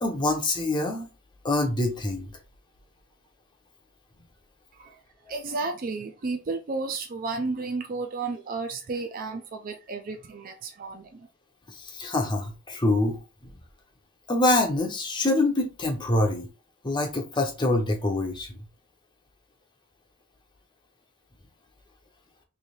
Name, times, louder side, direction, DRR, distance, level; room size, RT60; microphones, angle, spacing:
voice 1, 0.0-1.1 1.4-2.3 11.7-13.2 14.3-16.5 16.8-18.6, left 2 dB, 20° left, 0.6 m, -25 dB
voice 2, 5.3-11.3, right 3 dB, 40° right, 0.4 m, -32 dB
3.2 x 2.7 x 4.1 m
head